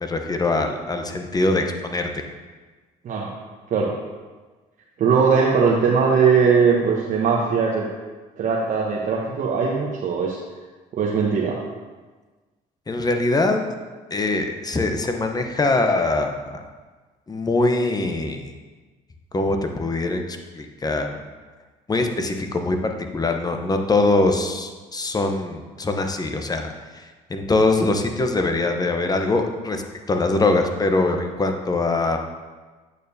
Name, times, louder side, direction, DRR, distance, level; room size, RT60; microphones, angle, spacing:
voice 1, 0.0-2.2 12.9-13.6 14.1-16.6 17.3-18.5 19.3-21.2 21.9-29.8 30.1-32.2, left 2 dB, 25° left, 5 dB, 0.9 m, -23 dB
voice 2, 5.0-7.9 8.4-10.4 10.9-11.6, right 5 dB, 50° right, -3 dB, 1.0 m, -20 dB
8.4 x 6.6 x 2.8 m, 1.3 s
supercardioid pair, 80°, 17 cm